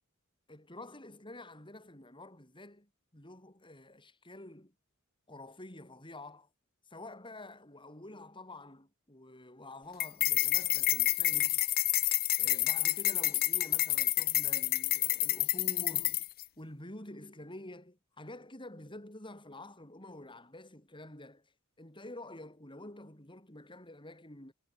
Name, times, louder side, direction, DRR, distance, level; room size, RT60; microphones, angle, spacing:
voice 1, 0.5-4.7 5.3-6.5 6.9-11.6 12.4-16.3 16.6-21.5 21.8-24.5, left 1 dB, 25° left, 7.2 m, -49 dB
sound 1, 10.0-16.4, left 16 dB, 45° left, 0.6 m, -29 dB
head